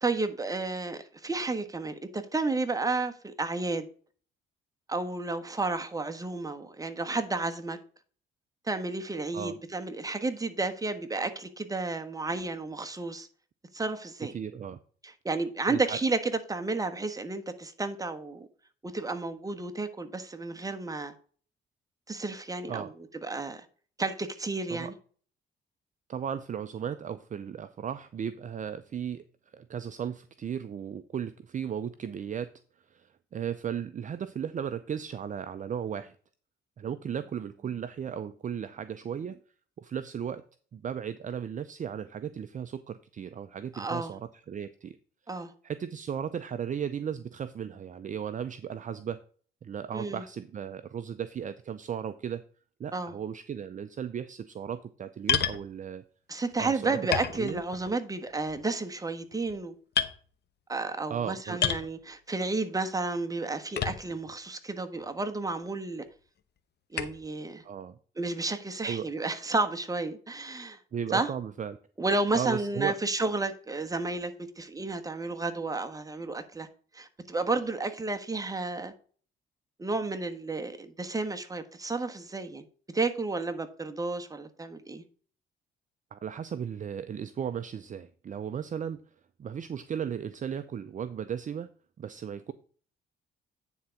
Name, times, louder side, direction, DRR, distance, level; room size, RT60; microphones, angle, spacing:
voice 1, 0.0-3.9 4.9-7.8 8.7-13.3 13.7-14.3 15.0-18.5 18.8-21.1 22.1-22.9 23.2-23.6 24.0-24.9 43.7-44.1 45.3-45.5 49.9-50.2 52.9-53.1 56.3-59.7 60.7-66.0 66.9-67.6 68.2-70.8 71.1-71.3 72.0-76.7 76.9-78.9 79.8-82.6 82.9-85.0, right 3 dB, 15° right, 1.3 m, -32 dB
voice 2, 14.3-14.8 15.7-16.0 22.7-22.9 24.7-24.9 26.1-29.2 29.5-32.5 32.9-36.1 36.8-39.4 39.8-40.4 40.7-45.0 45.3-49.2 49.6-52.4 52.8-56.0 56.6-57.0 57.3-57.6 61.1-61.6 67.6-68.0 68.8-69.1 70.9-71.8 72.3-73.0 86.1-89.0 89.4-91.7 92.0-92.5, right 8 dB, 40° right, 0.5 m, -36 dB
sound 1, 55.3-55.6 56.5-56.6 57.1-57.9 58.3-58.7 59.3-59.6 60.0-60.2 61.6-61.9 63.7-64.3 65.0-65.1 67.0-67.3, left 8 dB, 55° left, 0.9 m, -29 dB
9.5 x 3.9 x 5.7 m
cardioid pair, 90°, 20 cm